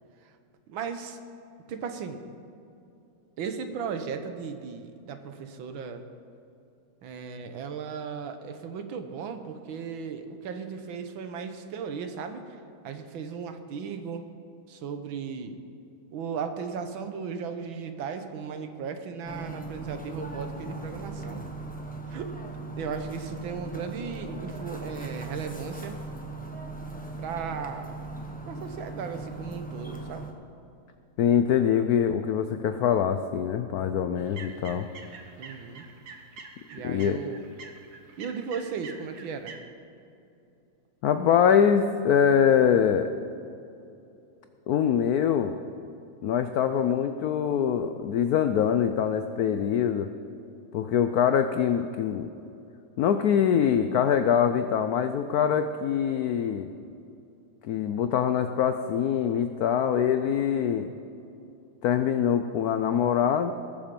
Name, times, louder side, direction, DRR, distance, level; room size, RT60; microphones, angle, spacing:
voice 1, 0.7-1.2 1.7-2.2 3.4-6.0 7.0-14.3 14.7-15.6 16.1-21.4 22.1-22.3 22.8-26.0 27.2-28.0 28.5-30.3 35.4-35.9 36.7-37.4 38.2-39.6, right 6 dB, 75° right, 7 dB, 1.7 m, -36 dB
sound 1, 19.2-30.3, right 2 dB, 10° left, 0.6 m, -38 dB
voice 2, 31.2-34.9 36.8-37.2 41.0-43.1 44.7-45.5 46.2-50.1 50.7-52.3 53.0-56.7 57.6-60.9 61.8-63.5, left 8 dB, 85° left, 9 dB, 0.8 m, -24 dB
sound 2, 34.2-39.6, right 5 dB, 55° right, 1.5 m, -46 dB
20.0 x 7.2 x 5.3 m, 2.7 s
omnidirectional pair, 2.2 m